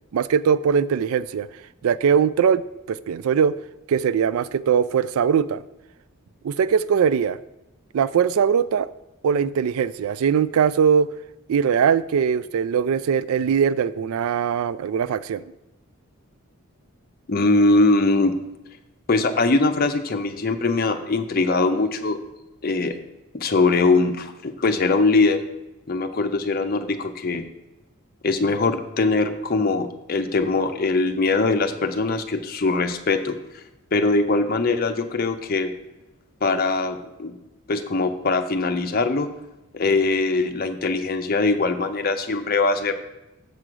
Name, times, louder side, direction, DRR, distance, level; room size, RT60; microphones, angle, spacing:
voice 1, 0.1-1.5 1.8-2.6 2.9-3.5 3.9-5.6 6.4-7.4 7.9-8.9 9.2-11.1 11.5-15.4, right 7 dB, 80° right, 17 dB, 0.3 m, -21 dB
voice 2, 17.3-18.3 19.1-22.2 22.6-22.9 23.3-25.4 25.9-27.4 28.2-33.4 33.9-35.7 36.4-37.4 37.7-39.3 39.7-42.9, left 3 dB, 45° left, 6 dB, 0.6 m, -21 dB
6.8 x 6.1 x 4.9 m, 0.97 s
head